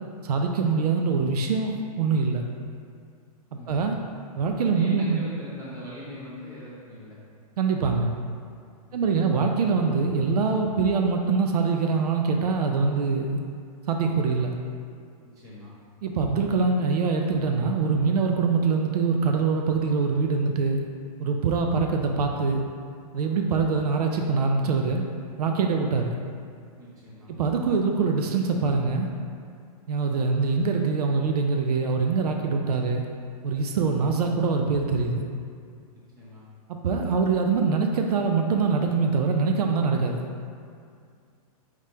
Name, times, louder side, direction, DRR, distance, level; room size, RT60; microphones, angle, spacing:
voice 1, 0.2-2.5 3.7-4.0 4.4-5.2 7.6-8.1 8.9-13.4 13.9-14.5 16.0-20.8 21.2-22.6 23.1-25.0 25.4-26.1 27.3-29.1 29.9-33.0 33.4-35.2 36.7-40.2, right 4 dB, 85° right, 3 dB, 0.5 m, -24 dB
voice 2, 3.5-4.0 4.7-7.2 8.9-9.3 15.2-15.7 26.8-27.3 36.2-36.4, left 1 dB, 15° right, -7 dB, 1.1 m, -42 dB
4.9 x 3.4 x 2.8 m, 2.3 s
hypercardioid pair, 150°, 20 cm